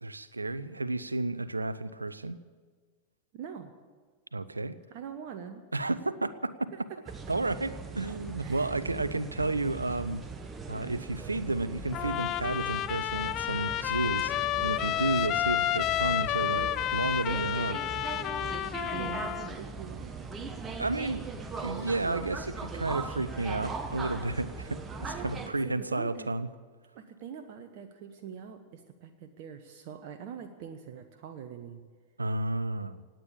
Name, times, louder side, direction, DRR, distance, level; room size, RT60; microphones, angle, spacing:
voice 1, 0.0-2.4 4.3-4.8 5.7-6.7 7.3-10.2 10.7-14.3 14.6-17.8 20.8-21.3 21.6-26.5 32.2-33.0, right 2 dB, 80° right, 16 dB, 0.6 m, -32 dB
voice 2, 3.3-3.8 4.9-5.9 6.7-7.2 8.4-9.0 9.3-9.5 18.9-20.1 25.4-26.3 26.9-31.8, right 7 dB, 45° right, 7 dB, 1.0 m, -44 dB
sound 1, 7.1-25.5, right 4 dB, 20° right, 1.3 m, -40 dB
Trumpet, 11.9-19.5, left 13 dB, 35° left, 0.5 m, -30 dB
18.0 x 9.1 x 8.5 m, 1.5 s
figure-of-eight pair, 90°, 0 cm